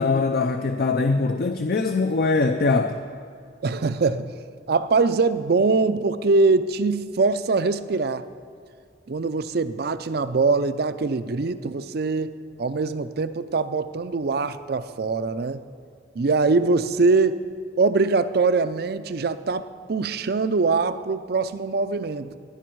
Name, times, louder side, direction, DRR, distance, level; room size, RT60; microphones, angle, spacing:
voice 1, 0.0-3.0, left 3 dB, 55° left, 6 dB, 0.5 m, -22 dB
voice 2, 3.6-4.3 4.7-8.2 9.1-15.6 16.2-17.4 17.8-22.4, right 3 dB, 55° right, 12 dB, 0.5 m, -23 dB
16.5 x 10.0 x 4.6 m, 2.2 s
head